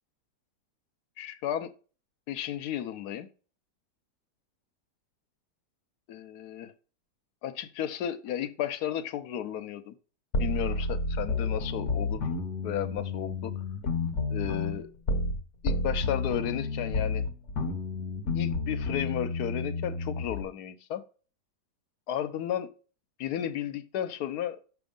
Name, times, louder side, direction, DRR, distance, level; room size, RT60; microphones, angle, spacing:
voice 1, 1.2-1.7 2.3-3.3 6.1-6.7 7.4-9.9 10.4-12.3 12.6-13.5 14.3-14.9 15.6-17.2 18.3-21.0 22.1-22.7 23.2-24.6, left 10 dB, 70° left, 1.1 m, -33 dB
sound 1, 10.3-15.4 15.7-20.4, left 3 dB, 50° left, 1.1 m, -31 dB
6.2 x 3.4 x 5.1 m
omnidirectional pair, 1.8 m